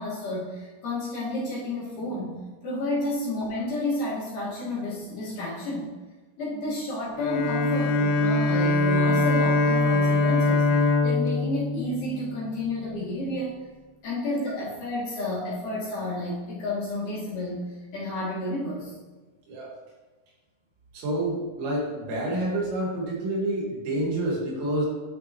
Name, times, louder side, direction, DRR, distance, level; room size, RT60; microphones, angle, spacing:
voice 1, 0.0-2.4 2.6-5.9 6.4-13.5 14.0-19.0, left 1 dB, 55° left, -8 dB, 3.0 m, -31 dB
Bowed string instrument, 7.2-12.6, left 2 dB, 80° left, 2.4 m, -23 dB
voice 2, 20.9-24.9, right 1 dB, 85° right, -3 dB, 4.1 m, -28 dB
9.9 x 5.8 x 3.0 m, 1.3 s
omnidirectional pair, 5.0 m